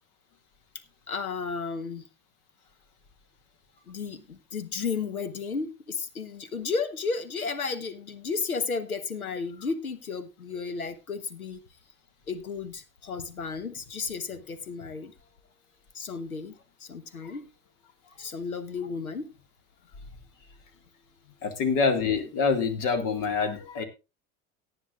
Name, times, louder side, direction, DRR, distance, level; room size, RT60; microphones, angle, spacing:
voice 1, 1.1-2.0 3.9-11.6 12.3-15.1 15.9-16.5 16.8-17.5 18.2-19.3, left 4 dB, 85° left, 13 dB, 1.2 m, -33 dB
voice 2, 21.4-23.8, left 5 dB, 45° left, 9 dB, 2.2 m, -26 dB
18.0 x 9.3 x 2.5 m, 0.27 s
figure-of-eight pair, 70°, 42 cm